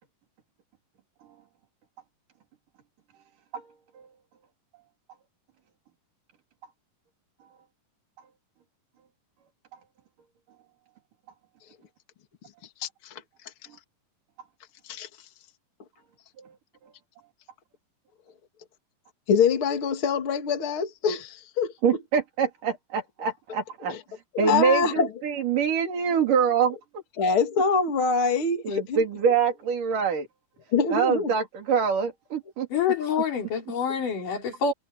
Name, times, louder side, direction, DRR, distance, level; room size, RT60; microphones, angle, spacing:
voice 1, 12.8-13.2 14.8-15.1 19.3-21.7 23.9-24.0 24.3-25.1 27.2-29.0 30.7-31.3, left 5 dB, 40° left, 3.0 m, -24 dB
voice 2, 21.8-26.8 28.6-30.3 30.9-32.7, right 6 dB, 70° right, 5.0 m, -25 dB
voice 3, 32.7-34.7, left 7 dB, 70° left, 6.0 m, -26 dB
omnidirectional pair, 3.9 m